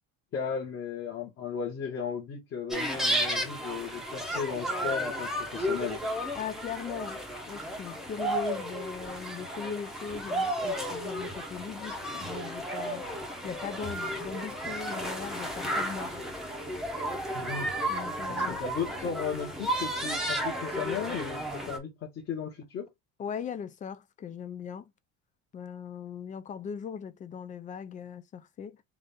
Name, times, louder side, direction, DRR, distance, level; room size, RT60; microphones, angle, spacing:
voice 1, 0.3-6.0 17.3-17.7 18.3-22.9, left 6 dB, 45° left, 1.6 m, -35 dB
sound 1, 2.7-21.8, right 1 dB, ahead, 0.8 m, -33 dB
voice 2, 6.3-13.1 13.4-16.2 17.9-18.6 19.0-19.1 23.2-24.9 25.5-28.8, left 7 dB, 25° left, 0.4 m, -39 dB
3.8 x 2.6 x 3.4 m
cardioid pair, 150°, 32 cm